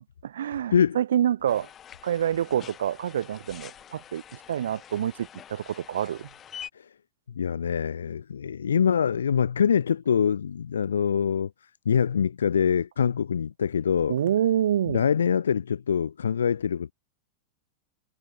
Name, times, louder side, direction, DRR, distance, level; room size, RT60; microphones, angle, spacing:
voice 1, 0.0-1.7 2.0-6.3 14.1-15.1, right 10 dB, 65° right, 1.0 m, -27 dB
sound 1, 1.5-6.7, left 9 dB, 25° left, 3.5 m, -46 dB
voice 2, 7.3-11.5 11.8-14.2 14.9-16.9, left 7 dB, 70° left, 1.4 m, -24 dB
figure-of-eight pair, 90°, 0 cm